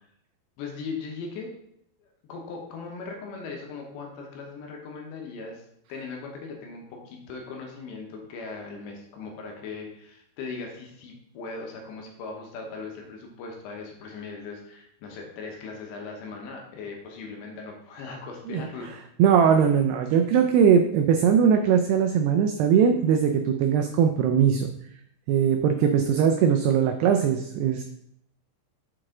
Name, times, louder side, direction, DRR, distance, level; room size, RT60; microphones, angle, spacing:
voice 1, 0.6-1.5 2.3-5.6 5.9-18.9, left 4 dB, 75° left, 1 dB, 3.2 m, -39 dB
voice 2, 19.2-24.7 25.3-27.8, right 7 dB, 90° right, 5 dB, 2.3 m, -20 dB
7.3 x 4.7 x 3.8 m, 0.73 s
omnidirectional pair, 5.3 m